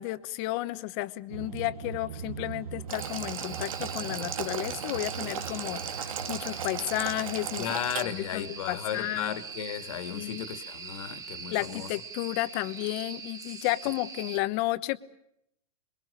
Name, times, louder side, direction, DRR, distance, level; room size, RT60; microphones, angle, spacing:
voice 1, 0.0-7.8 8.1-9.3 10.1-10.4 11.5-15.0, left 18 dB, 45° left, 1.2 m, -32 dB
sound 1, 1.3-9.4, right 6 dB, 90° right, 1.6 m, -42 dB
Boiling, 2.9-8.0, right 8 dB, 70° right, 1.9 m, -37 dB
sound 2, 3.0-14.4, right 5 dB, 20° right, 1.8 m, -42 dB
voice 2, 7.6-11.9, left 10 dB, 65° left, 2.4 m, -35 dB
27.0 x 22.0 x 6.8 m
hypercardioid pair, 130°, 18 cm